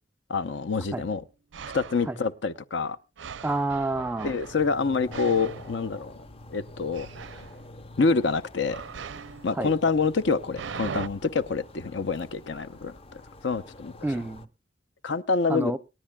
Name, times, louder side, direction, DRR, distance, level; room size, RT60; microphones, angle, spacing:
voice 1, 0.3-1.2 1.7-3.0 4.2-6.1 6.5-7.1 8.0-8.8 9.4-13.0 13.4-13.9 15.0-15.7, left 4 dB, 75° left, 0.7 m, -26 dB
sound 1, 1.5-2.2 3.2-6.5 6.9-7.6 8.7-11.1, right 6 dB, 85° right, 0.5 m, -40 dB
voice 2, 3.4-4.3 9.5-9.7 14.0-14.5 15.5-15.8, right 2 dB, 10° right, 0.5 m, -28 dB
sound 2, 4.4-14.5, left 2 dB, 30° left, 0.6 m, -47 dB
27.0 x 10.0 x 2.3 m
head